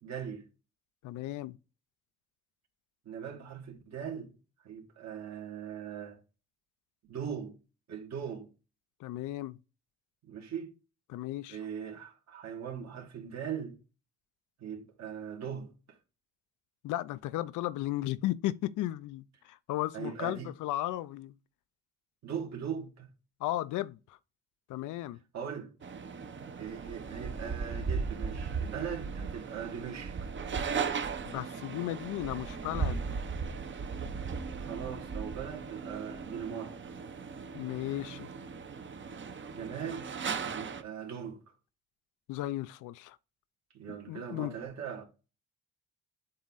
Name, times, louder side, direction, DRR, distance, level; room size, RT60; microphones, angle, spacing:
voice 1, 0.0-0.5 3.0-4.3 4.6-6.2 7.0-7.6 7.9-8.5 10.2-10.7 11.5-13.8 14.6-16.0 19.9-20.5 22.2-23.1 25.3-25.7 26.6-30.3 34.6-36.9 39.5-40.1 40.4-41.4 43.7-45.0, right 8 dB, 60° right, 2.3 m, -40 dB
voice 2, 1.0-1.6 9.0-9.6 11.1-11.6 16.8-21.3 23.4-24.2 24.7-25.2 31.2-33.1 37.5-38.3 42.3-43.2 44.1-44.5, left 15 dB, 85° left, 0.5 m, -35 dB
sound 1, 25.8-40.8, right 5 dB, 40° right, 0.9 m, -37 dB
7.6 x 3.0 x 4.0 m
cardioid pair, 90°, 30 cm